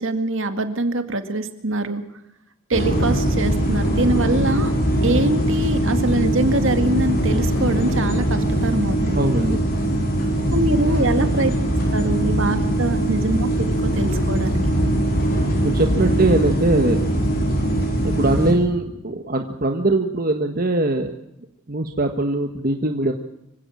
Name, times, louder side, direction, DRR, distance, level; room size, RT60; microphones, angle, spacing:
voice 1, 0.0-2.0 2.7-4.7 5.0-9.3 10.5-11.5 11.9-14.8, right 2 dB, 60° right, 8 dB, 2.2 m, -23 dB
sound 1, 2.7-18.5, right 1 dB, 45° left, 6.1 m, -21 dB
voice 2, 9.1-9.6 15.6-17.0 18.0-21.1 21.7-23.1, right 2 dB, 40° right, 4 dB, 1.5 m, -21 dB
25.5 x 16.5 x 7.4 m, 0.85 s
head